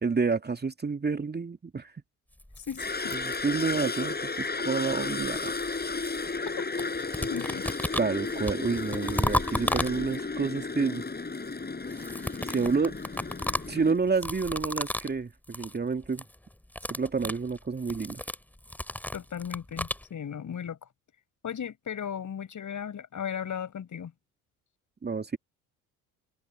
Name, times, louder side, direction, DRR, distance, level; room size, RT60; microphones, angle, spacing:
voice 1, 0.0-1.9 3.1-5.6 6.2-6.4 8.0-11.0 12.5-13.0 13.7-16.2 16.9-18.2 25.0-25.4, right 4 dB, 25° right, 2.5 m, -29 dB
sound 1, 2.4-4.0 4.9-6.5 6.8-10.4 11.8-15.2 15.4-15.8 16.0-16.3 16.6-20.0, left 1 dB, 5° left, 2.7 m, -34 dB
voice 2, 2.6-3.2 6.6-7.7 19.1-20.9 21.4-24.1, left 8 dB, 45° left, 7.9 m, -36 dB
sound 2, 2.8-13.9, left 4 dB, 20° left, 7.1 m, -33 dB
figure-of-eight pair, 50°, 43 cm